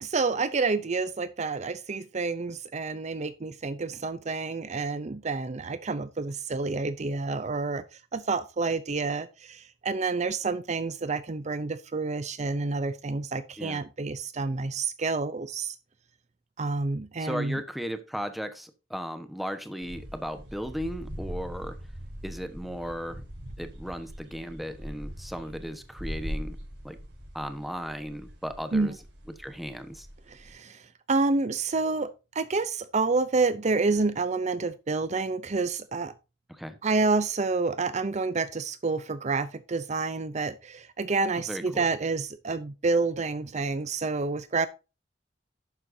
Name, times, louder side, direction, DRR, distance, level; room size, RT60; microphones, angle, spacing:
voice 1, 0.0-15.8 16.6-17.6 28.7-29.0 30.3-32.1 32.3-36.1 36.8-44.7, right 3 dB, 40° right, 0.6 m, -29 dB
voice 2, 17.2-21.8 22.2-23.2 23.6-26.6 26.8-27.0 27.3-28.9 29.4-30.1 36.5-36.8 41.4-41.8, equal, ahead, 1.2 m, -36 dB
sound 1, 19.8-30.5, equal, 85° right, 5.5 m, -41 dB
11.5 x 8.8 x 2.7 m
head